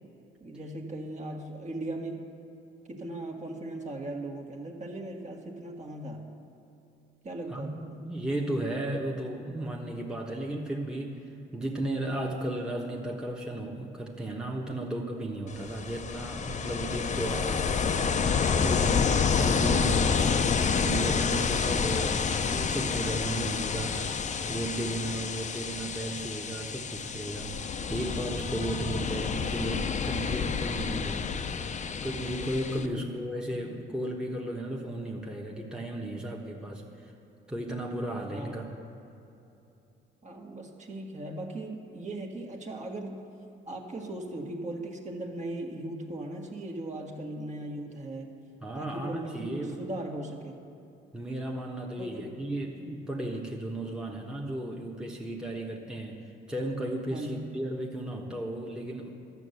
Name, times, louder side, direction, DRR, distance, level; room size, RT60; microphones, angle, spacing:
voice 1, 0.4-2.2 2.9-6.3 7.2-8.0 32.7-33.1 38.3-38.6 40.2-43.3 43.7-48.3 48.7-50.6 52.0-52.2 57.1-57.4, right 1 dB, 35° right, 1 dB, 1.6 m, -38 dB
voice 2, 7.5-17.7 18.6-24.1 24.5-31.5 32.0-37.1 37.5-38.7 48.6-49.8 51.1-59.1, right 1 dB, 5° right, -2 dB, 1.2 m, -35 dB
Ocean, 15.5-32.9, left 6 dB, 35° left, 0.6 m, -29 dB
12.0 x 6.7 x 8.1 m, 2.8 s
cardioid pair, 90°, 20 cm